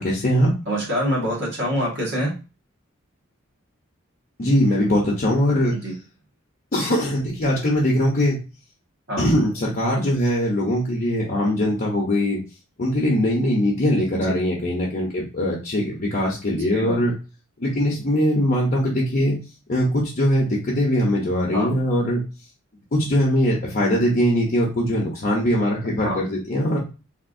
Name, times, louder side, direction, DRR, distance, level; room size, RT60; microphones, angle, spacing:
voice 1, 0.0-0.5 4.4-5.8 6.7-8.4 9.2-12.4 12.8-17.1 17.6-19.4 19.7-22.2 22.9-26.8, equal, 45° left, -3 dB, 0.7 m, -21 dB
voice 2, 0.7-2.3 5.7-5.9 9.1-9.4 14.1-14.4 16.7-17.0 21.5-21.8 26.0-26.2, equal, 55° right, -3 dB, 1.4 m, -26 dB
3.5 x 2.5 x 2.5 m, 0.31 s
head